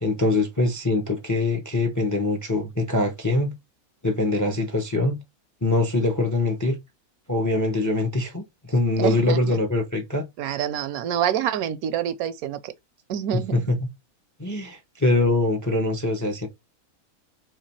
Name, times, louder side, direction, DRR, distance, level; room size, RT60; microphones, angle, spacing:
voice 1, 0.0-3.5 4.0-5.2 5.6-6.8 7.3-8.4 8.7-10.2 13.5-13.8 14.4-16.5, left 2 dB, 25° left, 0.4 m, -23 dB
voice 2, 9.0-9.6 10.4-12.7 13.1-13.8, right 10 dB, 85° right, 1.1 m, -27 dB
3.3 x 3.3 x 4.2 m
omnidirectional pair, 1.5 m